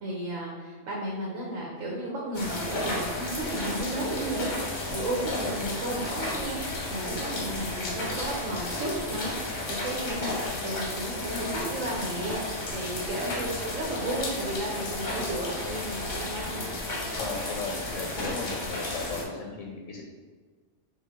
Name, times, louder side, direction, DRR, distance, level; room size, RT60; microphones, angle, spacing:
voice 1, 0.0-16.7, right 1 dB, 90° right, -3 dB, 1.2 m, -33 dB
sound 1, 2.3-19.2, left 1 dB, 40° left, 0.9 m, -33 dB
voice 2, 17.1-20.0, left 4 dB, 75° left, 1 dB, 0.9 m, -36 dB
5.7 x 2.6 x 3.6 m, 1.5 s
omnidirectional pair, 1.3 m